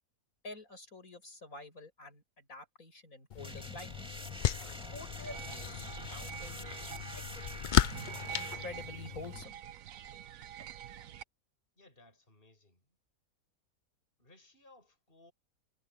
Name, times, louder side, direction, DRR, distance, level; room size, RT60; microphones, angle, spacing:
voice 1, 0.4-4.2 4.9-9.6, left 2 dB, 70° left, 7.8 m, -49 dB
sound 1, 3.3-9.4, left 10 dB, 90° left, 0.4 m, -35 dB
sound 2, 3.4-8.6, equal, 5° right, 2.1 m, -47 dB
sound 3, 5.3-11.2, right 10 dB, 70° right, 1.1 m, -46 dB
voice 2, 11.8-13.0 14.2-15.3, left 2 dB, 40° left, 6.0 m, -61 dB
omnidirectional pair, 1.5 m